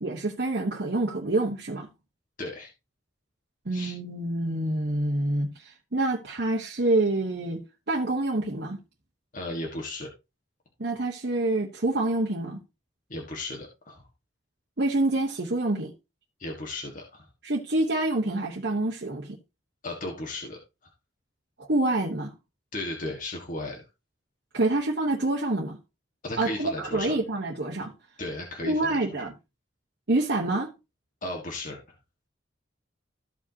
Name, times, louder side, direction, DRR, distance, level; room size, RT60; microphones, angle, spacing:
voice 1, 0.0-1.9 3.6-8.8 10.8-12.6 14.8-15.9 17.4-19.4 21.6-22.3 24.5-25.8 26.4-27.9 28.6-29.3 30.1-30.7, right 2 dB, 60° right, 1.2 m, -27 dB
voice 2, 2.4-2.7 3.7-3.9 9.3-10.1 13.1-14.0 16.4-17.3 19.8-20.6 22.7-23.8 26.2-27.2 28.2-28.9 31.2-31.8, left 2 dB, 45° left, 1.7 m, -35 dB
14.0 x 5.0 x 2.8 m
head